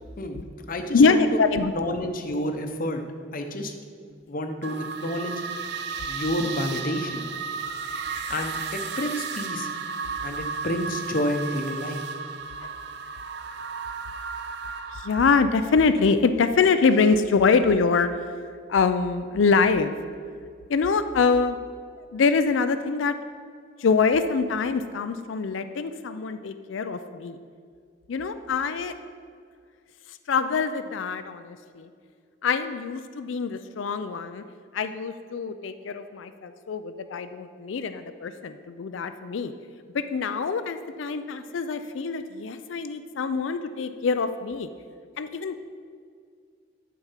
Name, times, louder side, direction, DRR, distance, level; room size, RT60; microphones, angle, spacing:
voice 1, 0.2-1.2 1.7-3.0 3.3-3.7 4.3-5.4 6.1-7.3 8.3-9.7 10.2-12.0, left 1 dB, 50° left, 6 dB, 0.8 m, -29 dB
voice 2, 0.9-1.7 12.6-12.7 14.9-18.1 18.7-19.9 20.7-21.6 22.0-23.1 23.8-27.4 28.1-28.9 30.1-31.9 32.4-34.4 34.7-39.5 39.9-44.7 45.2-45.5, left 4 dB, 90° left, 10 dB, 0.4 m, -24 dB
sound 1, 4.6-15.4, right 5 dB, 60° right, 0.5 m, -34 dB
11.5 x 4.7 x 5.7 m, 2.2 s
head